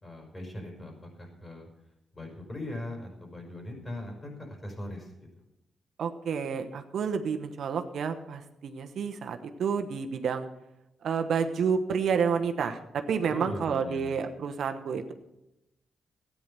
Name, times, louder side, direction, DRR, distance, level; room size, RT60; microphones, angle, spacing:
voice 1, 0.0-1.7 2.1-5.1 13.3-14.2, left 1 dB, 30° left, 2 dB, 5.1 m, -40 dB
voice 2, 6.0-10.5 11.0-15.1, right 6 dB, 70° right, 7 dB, 1.0 m, -30 dB
13.0 x 9.5 x 6.8 m, 0.92 s
cardioid pair, 65°, 0 cm